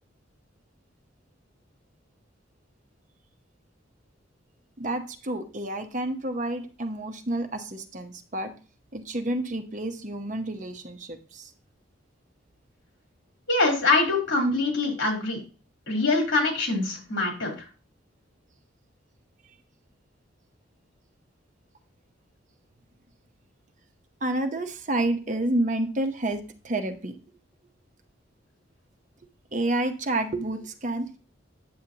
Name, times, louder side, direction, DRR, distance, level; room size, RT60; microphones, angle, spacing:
voice 1, 4.8-8.5 8.9-11.5 24.2-27.2 29.5-31.2, right 1 dB, 40° right, 7 dB, 0.9 m, -29 dB
voice 2, 13.5-15.4 15.9-17.5, left 3 dB, 80° left, 1 dB, 3.7 m, -24 dB
8.6 x 7.5 x 2.9 m, 0.35 s
head